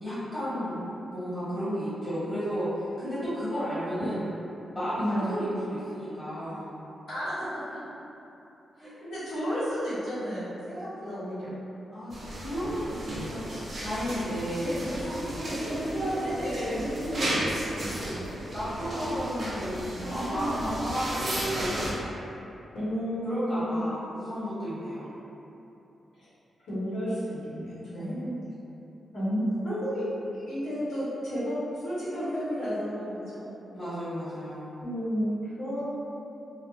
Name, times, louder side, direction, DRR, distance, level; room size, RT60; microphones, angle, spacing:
voice 1, 0.0-4.3 4.7-6.8 8.8-8.9 11.9-13.5 13.8-14.9 17.0-17.4 17.9-21.8 23.2-25.1 27.9-28.3 33.7-34.7, equal, 15° left, -13 dB, 1.3 m, -33 dB
voice 2, 5.0-5.4 7.1-7.5 7.7-7.8 8.8-11.6 15.5-17.9 22.7-23.8 26.7-28.3 29.1-33.4 34.8-35.8, equal, 80° left, -12 dB, 1.0 m, -32 dB
sound 1, 12.1-21.9, right 1 dB, 40° right, 0.5 m, -34 dB
2.3 x 2.0 x 3.1 m, 2.9 s
wide cardioid pair, 165°, 0 cm